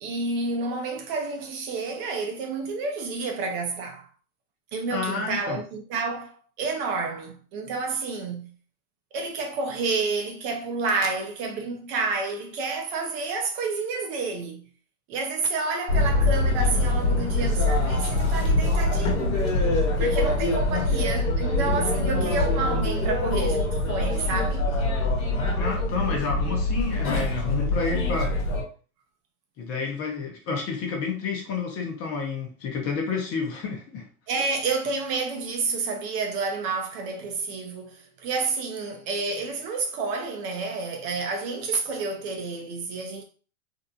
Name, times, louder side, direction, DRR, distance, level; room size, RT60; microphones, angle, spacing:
voice 1, 0.0-4.1 4.7-8.5 9.1-14.7 15.1-19.4 20.0-24.7 34.3-43.2, right 4 dB, 40° right, 0.6 m, -29 dB
voice 2, 4.9-5.6 20.7-20.9 22.2-22.3 25.5-28.3 29.6-34.1, left 5 dB, 30° left, 0.8 m, -30 dB
sound 1, 15.9-28.6, left 2 dB, 60° left, 1.1 m, -24 dB
2.6 x 2.0 x 2.7 m
hypercardioid pair, 110°, 46 cm